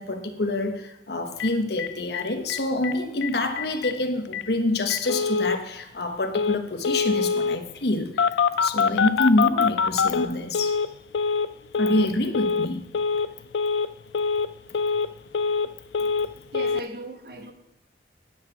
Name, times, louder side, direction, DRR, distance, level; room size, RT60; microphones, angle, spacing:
voice 1, 0.0-8.3 8.6-10.7 11.8-12.9, left 2 dB, 65° left, 1.1 m, -26 dB
Telephone, 1.4-1.5 1.8-1.9 2.1-2.2 2.5-2.9 3.2-3.3 3.6-3.9 4.3-4.4 4.9-5.6 6.3-6.6 6.8-7.6 8.2-10.9 11.1-11.5 11.7-12.1 12.3-12.7 12.9-13.3 13.5-13.9 14.1-14.5 14.7-15.7 15.9-16.3 16.5-16.8, left 5 dB, 85° left, 0.4 m, -24 dB
voice 2, 16.5-17.5, right 1 dB, 55° right, 1.1 m, -37 dB
9.6 x 5.9 x 6.9 m
head